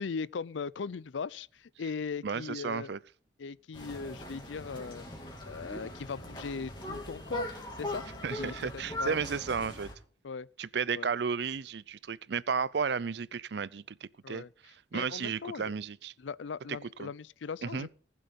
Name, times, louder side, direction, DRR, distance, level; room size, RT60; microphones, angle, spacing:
voice 1, 0.0-2.9 3.4-5.0 5.5-7.5 7.8-8.0 8.4-9.2 10.2-10.5 10.9-11.1 14.2-14.5 14.9-15.7 16.2-17.9, left 5 dB, 85° left, 0.5 m, -39 dB
voice 2, 2.2-3.0 8.2-9.9 10.6-16.1 16.7-17.1 17.6-17.9, right 5 dB, 65° right, 0.5 m, -33 dB
sound 1, 3.7-9.9, left 1 dB, 25° left, 3.2 m, -40 dB
19.5 x 7.6 x 5.3 m
head